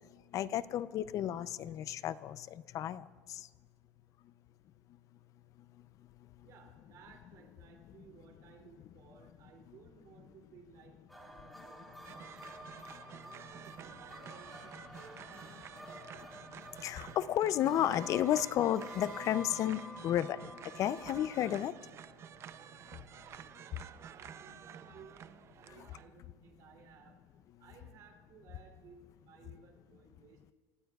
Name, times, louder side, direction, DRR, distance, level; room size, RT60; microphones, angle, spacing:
voice 1, 0.3-3.5 16.8-21.7 25.7-25.9, left 11 dB, 40° left, 16 dB, 0.5 m, -32 dB
voice 2, 6.4-12.6 13.2-15.6 15.9-16.3 23.5-27.2 27.6-30.4, right 7 dB, 50° right, 1 dB, 2.8 m, -59 dB
sound 1, 11.1-21.6, equal, ahead, 1.9 m, -50 dB
sound 2, 12.0-26.1, right 9 dB, 35° right, 0.5 m, -51 dB
28.5 x 17.0 x 2.4 m, 1.5 s
supercardioid pair, 135°, 8 cm